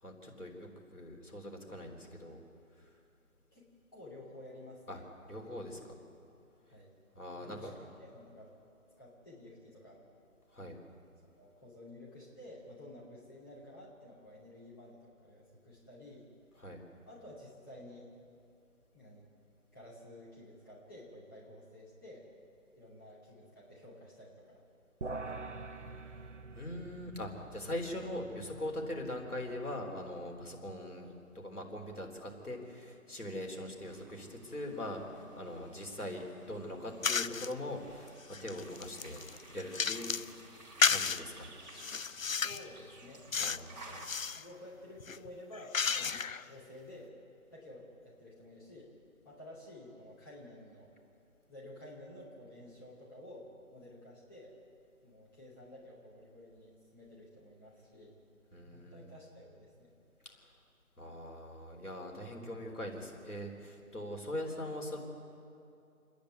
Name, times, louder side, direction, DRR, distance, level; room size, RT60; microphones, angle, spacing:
voice 1, 0.0-2.4 2.8-2.9 4.9-5.0 5.3-5.9 7.2-7.7 10.5-10.8 16.6-16.8 26.5-38.1 38.4-39.2 39.5-40.1 40.9-41.5 43.3-43.8 58.5-59.2 60.3-60.5 61.0-65.0, left 1 dB, 80° left, 1 dB, 3.9 m, -42 dB
voice 2, 3.5-5.0 5.7-5.8 6.7-6.9 7.4-7.9 8.1-8.5 9.0-10.0 11.3-16.3 17.1-18.1 18.9-19.3 19.7-22.3 22.8-24.6 42.3-43.6 43.8-44.1 44.3-47.2 47.5-48.9 49.2-50.9 51.5-54.6 55.0-58.2 58.6-59.9, left 1 dB, 15° left, -9 dB, 2.8 m, -52 dB
sound 1, 25.0-30.5, right 3 dB, 55° right, 0.8 m, -46 dB
sound 2, 33.8-44.1, right 2 dB, 30° right, 2.3 m, -55 dB
sound 3, 37.0-37.5 38.1-40.3 40.8-41.2 41.7-42.7 43.3-43.7 44.0-44.4 45.0-46.5, left 6 dB, 65° left, 0.6 m, -32 dB
28.5 x 10.5 x 9.5 m, 2.6 s
figure-of-eight pair, 165°, 44 cm